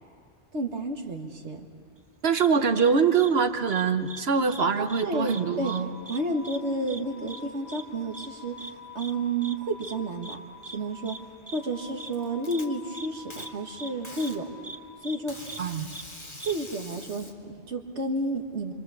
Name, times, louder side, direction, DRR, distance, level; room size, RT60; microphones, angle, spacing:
voice 1, 0.5-1.7 4.8-5.8 6.1-10.4 10.7-11.2 11.5-14.4 15.0-15.4 16.4-18.7, right 2 dB, 85° right, 3 dB, 2.1 m, -31 dB
voice 2, 2.2-5.9 15.6-15.9, right 6 dB, 65° right, 8 dB, 1.2 m, -24 dB
sound 1, 2.3-2.5 2.8-2.9 3.2-3.3 3.7-4.2 4.5-4.6 4.9-5.4 5.7-5.8 6.1-6.2 6.4-6.6 6.9-7.0 7.3-7.4 7.7-7.8 8.1-8.3 8.6-8.7 9.0-9.1 9.4-9.5 9.8-9.9 10.2-10.4 10.6-10.8 11.1-11.2 11.5-11.6 12.0-12.1 12.5-12.6 12.9-13.1 13.4-13.5 13.8-13.9 14.2-14.3 14.6-14.8 15.0-15.2 15.4-15.6 15.9-16.0 16.4-16.5, right 2 dB, 20° right, 0.9 m, -41 dB
sound 2, 5.0-14.9, left 3 dB, ahead, 7.5 m, -48 dB
Packing tape duct tape, 11.6-12.6 13.3-13.5 14.0-14.4 15.3-17.3, left 1 dB, 25° left, 2.0 m, -44 dB
26.5 x 25.0 x 7.1 m, 2.3 s
omnidirectional pair, 1.1 m